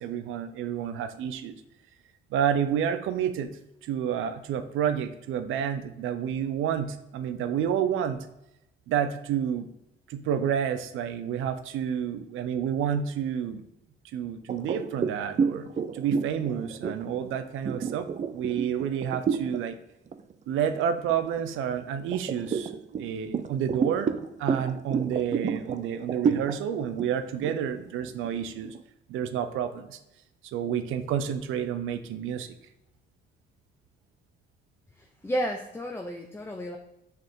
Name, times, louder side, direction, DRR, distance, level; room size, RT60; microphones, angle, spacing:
voice 1, 0.0-1.6 2.3-3.5 3.8-8.3 8.9-9.7 10.1-13.6 14.1-18.1 18.3-19.8 20.5-24.1 24.4-28.7 29.1-30.0 30.4-32.5, right 8 dB, 85° right, 10 dB, 0.6 m, -29 dB
sound 1, 14.5-19.6 20.1-20.3 20.7-21.6 22.1-28.8, right 6 dB, 35° right, 0.5 m, -30 dB
voice 2, 35.2-36.8, equal, 10° left, 3 dB, 0.6 m, -31 dB
6.3 x 4.6 x 3.7 m, 0.88 s
cardioid pair, 90°, 20 cm